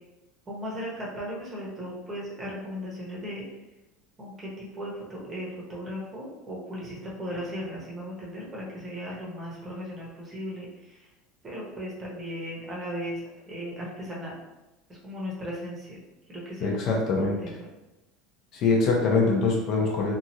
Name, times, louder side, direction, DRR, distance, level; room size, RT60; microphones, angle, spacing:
voice 1, 0.5-3.5 4.2-11.1 11.4-14.3 14.9-16.0 16.3-16.7 17.1-17.6, equal, 20° right, -4 dB, 0.8 m, -37 dB
voice 2, 16.6-17.6 18.5-20.1, left 3 dB, 45° left, -1 dB, 0.6 m, -24 dB
2.8 x 2.4 x 2.8 m, 1.0 s
cardioid pair, 155°, 0 cm